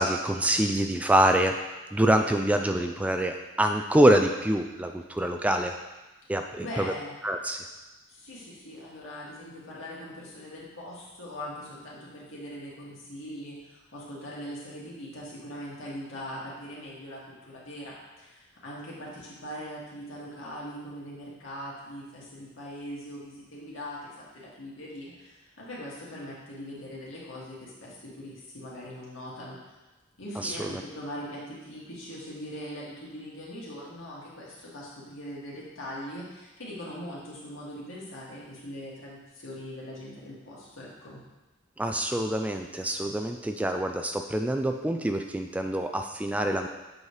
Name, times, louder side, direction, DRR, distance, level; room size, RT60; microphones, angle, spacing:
voice 1, 0.0-1.5 1.9-5.8 6.3-6.9 7.2-7.6 30.4-30.7 41.8-46.7, right 1 dB, 5° right, 5 dB, 0.3 m, -25 dB
voice 2, 6.6-7.1 8.1-29.8 30.2-41.2, equal, 90° left, -6 dB, 2.2 m, -41 dB
7.9 x 5.4 x 3.2 m, 1.1 s
head